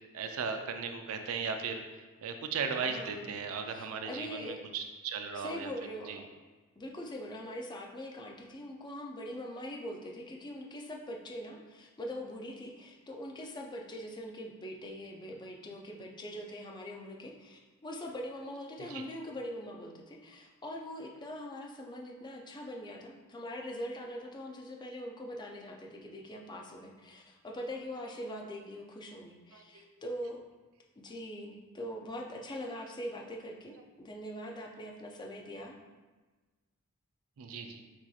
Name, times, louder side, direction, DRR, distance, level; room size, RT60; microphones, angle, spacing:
voice 1, 0.1-1.8 2.2-5.7 6.1-6.2 18.9-19.0 29.5-29.6 37.4-37.8, right 5 dB, 70° right, 6 dB, 0.4 m, -36 dB
voice 2, 2.7-3.4 3.7-4.6 5.3-6.1 6.8-30.4 31.0-35.8, equal, 20° left, 0 dB, 0.4 m, -42 dB
6.1 x 2.8 x 2.3 m, 1.3 s
head